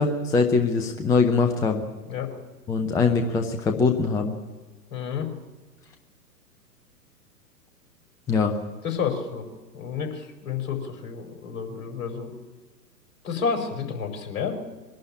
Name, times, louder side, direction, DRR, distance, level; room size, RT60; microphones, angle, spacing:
voice 1, 0.0-1.8 2.7-4.3 8.3-8.5, left 4 dB, 5° left, 6 dB, 0.6 m, -22 dB
voice 2, 4.9-5.3 8.8-9.5 9.7-12.3 13.2-14.6, left 6 dB, 50° left, 3 dB, 5.0 m, -30 dB
22.5 x 12.0 x 9.7 m, 1.3 s
figure-of-eight pair, 115°, 48 cm